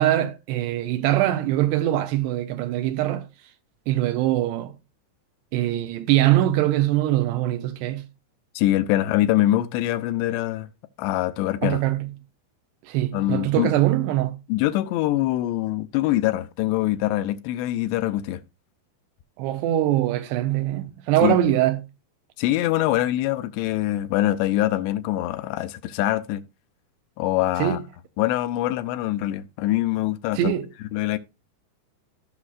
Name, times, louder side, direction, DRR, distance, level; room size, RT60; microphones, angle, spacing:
voice 1, 0.0-3.3 3.9-4.7 5.5-8.0 11.6-12.1 12.9-14.4 19.4-21.8 27.6-27.8 30.3-30.7, right 13 dB, 85° right, 2.8 m, -22 dB
voice 2, 8.6-10.7 11.0-11.8 13.1-13.7 14.5-18.4 21.2-21.4 22.4-26.4 27.2-27.8 28.2-30.5 30.9-31.2, left 14 dB, 85° left, 2.8 m, -24 dB
15.5 x 6.1 x 2.4 m
omnidirectional pair, 4.9 m